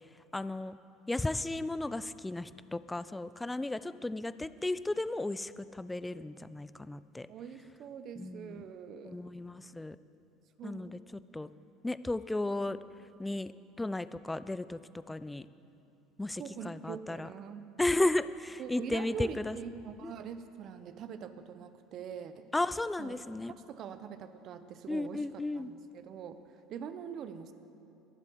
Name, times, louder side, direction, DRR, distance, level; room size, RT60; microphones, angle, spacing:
voice 1, 0.3-0.8 1.1-7.3 8.2-8.6 9.1-10.0 10.6-11.0 11.3-11.5 11.8-12.8 13.2-13.5 13.8-14.8 15.1-15.5 16.2-17.3 17.8-19.6 20.0-20.1 22.5-23.5 24.9-25.7, left 2 dB, 10° left, 15 dB, 0.4 m, -34 dB
voice 2, 7.3-9.2 10.6-11.0 16.4-17.7 18.6-22.5 23.0-23.2 23.6-25.3 25.5-27.5, right 7 dB, 50° right, 11 dB, 0.8 m, -44 dB
22.0 x 7.5 x 4.7 m, 2.7 s
supercardioid pair, 95°, 0 cm